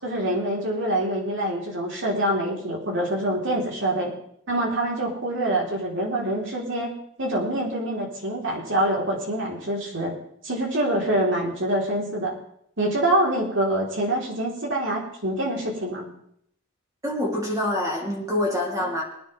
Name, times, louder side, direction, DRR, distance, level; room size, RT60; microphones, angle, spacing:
voice 1, 0.0-4.1 4.5-6.9 7.2-10.2 10.4-12.3 12.8-16.1, right 1 dB, 60° right, -2 dB, 4.1 m, -25 dB
voice 2, 17.0-19.0, left 1 dB, 15° right, -2 dB, 3.4 m, -26 dB
22.0 x 9.8 x 3.6 m, 0.69 s
head